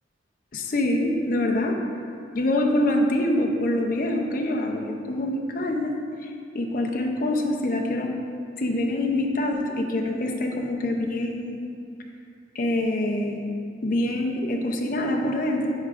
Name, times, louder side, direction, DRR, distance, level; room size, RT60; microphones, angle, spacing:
voice 1, 0.5-1.7 2.3-5.9 6.2-6.3 6.5-8.1 8.6-11.6 12.5-13.4 13.8-15.7, left 1 dB, 50° left, 1 dB, 0.6 m, -25 dB
9.4 x 4.8 x 2.5 m, 2.4 s
head